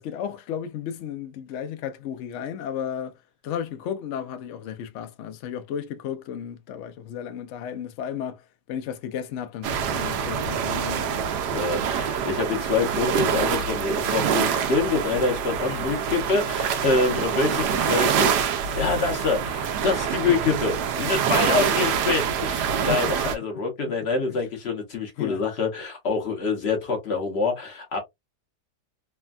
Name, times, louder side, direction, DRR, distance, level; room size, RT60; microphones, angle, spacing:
voice 1, 0.0-3.2 3.4-11.2 22.7-23.3 23.9-24.0 24.3-24.4 25.2-25.4, left 9 dB, 80° left, 0.6 m, -34 dB
sound 1, 9.6-23.4, right 7 dB, 80° right, 1.2 m, -25 dB
voice 2, 11.5-28.0, left 4 dB, 50° left, 0.9 m, -26 dB
3.3 x 2.1 x 2.3 m
omnidirectional pair, 1.8 m